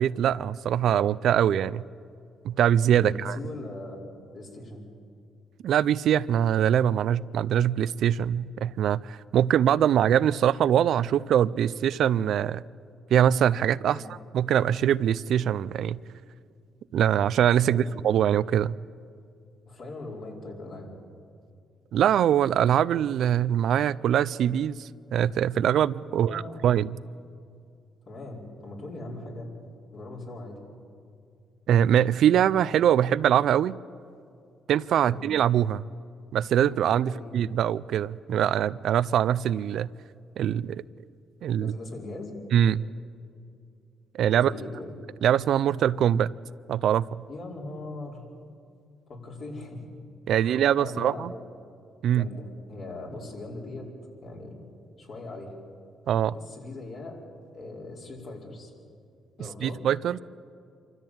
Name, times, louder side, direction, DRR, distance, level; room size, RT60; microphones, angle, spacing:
voice 1, 0.0-1.8 2.4-3.4 5.6-12.6 13.1-16.0 16.9-18.8 21.9-26.9 31.7-33.8 34.7-35.9 36.3-39.9 40.4-40.8 41.4-41.7 42.5-42.8 44.1-44.5 45.2-46.3 46.7-47.1 50.3-51.3 52.0-52.3 56.1-56.3 59.6-60.2, right 10 dB, 75° right, 17 dB, 0.4 m, -23 dB
voice 2, 2.9-4.0 4.3-4.9 13.9-14.1 17.7-17.9 19.7-20.9 26.1-26.8 28.0-29.5 29.9-30.6 35.0-35.3 37.0-37.4 41.6-42.3 44.3-44.9 47.3-48.2 49.1-50.0 50.3-51.4 52.1-53.9 54.2-54.6 55.0-55.5 56.3-57.2 57.5-58.7 59.4-59.8, left 2 dB, 55° left, -2 dB, 5.1 m, -40 dB
26.5 x 14.0 x 8.8 m, 2.4 s
cardioid pair, 90°, 0 cm